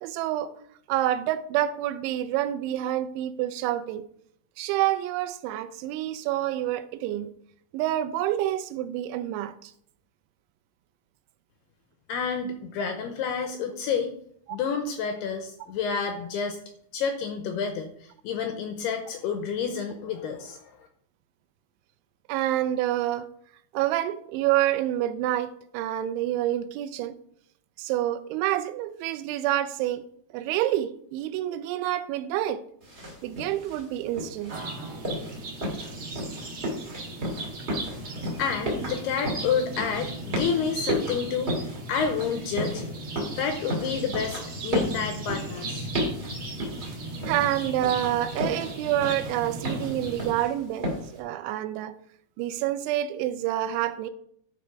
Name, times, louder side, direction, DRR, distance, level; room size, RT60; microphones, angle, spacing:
voice 1, 0.0-0.5 0.9-4.0 4.6-7.3 7.7-9.7 22.3-23.3 23.7-27.1 27.8-30.0 30.3-32.6 33.2-34.5 47.2-51.9 52.4-54.1, right 13 dB, 85° right, 3.0 m, -28 dB
voice 2, 12.1-14.1 14.5-16.6 16.9-20.7 38.4-41.5 41.9-43.0 43.4-45.9, left 6 dB, 80° left, 2.5 m, -29 dB
sound 1, 32.8-51.2, equal, 25° right, 1.3 m, -34 dB
sound 2, 34.5-50.3, right 2 dB, 70° right, 1.2 m, -37 dB
12.0 x 4.6 x 5.0 m
omnidirectional pair, 5.3 m